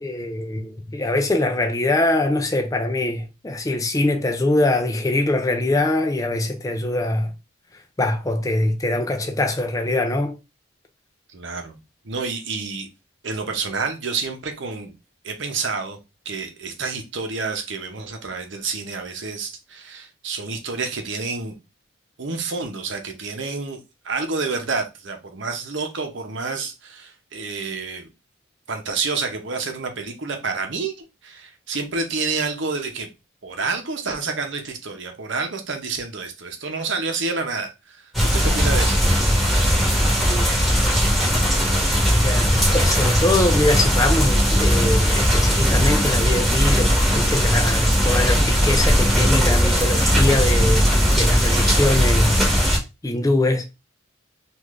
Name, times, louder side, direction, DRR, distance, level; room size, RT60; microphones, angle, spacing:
voice 1, 0.0-7.3 8.0-10.3 40.2-40.5 42.2-50.8 51.2-52.5 53.0-53.7, left 2 dB, 15° left, 0.4 m, -23 dB
voice 2, 11.3-11.8 12.0-12.9 13.2-14.9 15.2-16.0 16.2-21.6 22.2-23.8 24.0-28.1 28.7-33.1 33.4-38.0 38.2-39.0, right 4 dB, 60° right, 0.8 m, -28 dB
sound 1, 38.1-52.8, equal, ahead, 1.2 m, -18 dB
3.7 x 2.5 x 3.1 m
head